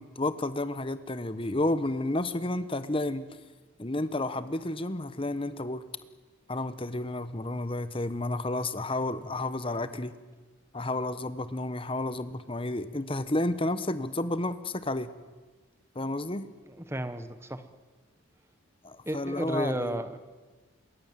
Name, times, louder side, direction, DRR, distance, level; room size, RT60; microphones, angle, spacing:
voice 1, 0.0-3.2 3.8-5.8 6.5-10.1 10.7-15.1 15.9-16.5 18.8-20.0, left 2 dB, 25° left, 13 dB, 1.1 m, -31 dB
voice 2, 16.3-17.7 19.0-20.2, right 1 dB, 10° right, 11 dB, 1.3 m, -34 dB
26.5 x 22.5 x 7.6 m, 1.3 s
head